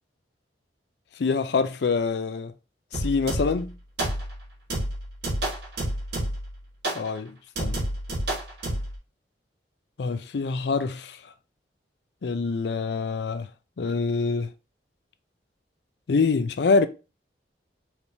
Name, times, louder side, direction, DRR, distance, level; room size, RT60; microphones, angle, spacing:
voice 1, 1.2-2.5 2.9-3.7 6.9-7.8 10.0-11.2 12.2-13.5 13.8-14.5 16.1-16.9, left 4 dB, 70° left, 0.4 m, -25 dB
sound 1, 2.9-3.7 4.0-4.4 4.7-6.5 6.8-7.1 7.6-8.9, right 1 dB, 70° right, 1.8 m, -29 dB
4.3 x 3.5 x 2.8 m
head